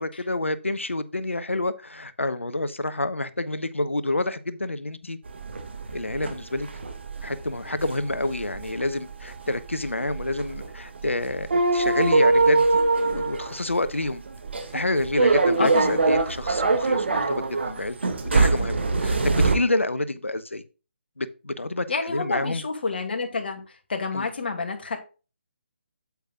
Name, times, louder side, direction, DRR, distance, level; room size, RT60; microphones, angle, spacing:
voice 1, 0.0-5.2 5.9-6.7 7.2-14.2 14.7-20.6 21.2-22.6 24.1-24.3, left 2 dB, 85° left, 14 dB, 0.9 m, -28 dB
sound 1, 5.3-19.5, right 3 dB, 60° right, 2.0 m, -23 dB
voice 2, 15.6-16.0 21.9-23.6 23.9-25.0, left 4 dB, 55° left, 5 dB, 2.2 m, -28 dB
8.3 x 8.2 x 2.4 m, 0.33 s
figure-of-eight pair, 145°, 7 cm